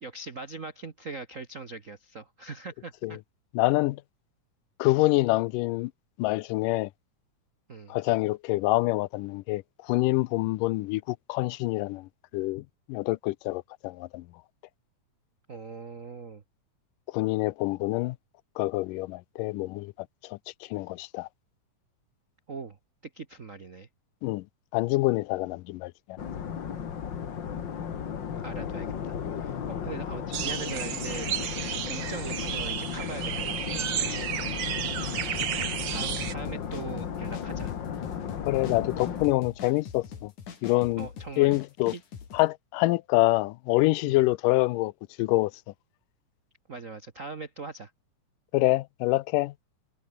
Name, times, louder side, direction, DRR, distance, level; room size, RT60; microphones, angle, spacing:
voice 1, 0.0-3.2 7.7-7.9 15.5-16.4 22.5-22.8 23.1-23.9 28.4-31.3 31.9-34.4 35.9-37.7 41.0-41.6 41.8-42.0 44.0-44.2 46.7-47.9, right 4 dB, 85° right, 0.7 m, -41 dB
voice 2, 3.5-4.0 4.8-5.9 6.2-6.9 7.9-14.2 17.1-18.2 18.6-19.9 20.3-20.4 20.7-21.3 24.2-24.4 24.7-26.2 38.5-40.3 40.6-41.1 41.4-42.0 42.3-44.9 45.2-45.5 48.5-49.5, left 20 dB, 85° left, 2.2 m, -26 dB
sound 1, 26.2-39.3, left 8 dB, 45° left, 1.7 m, -35 dB
sound 2, 30.3-36.3, right 10 dB, 60° right, 1.3 m, -32 dB
sound 3, 35.1-42.4, left 6 dB, 65° left, 4.6 m, -43 dB
omnidirectional pair, 3.8 m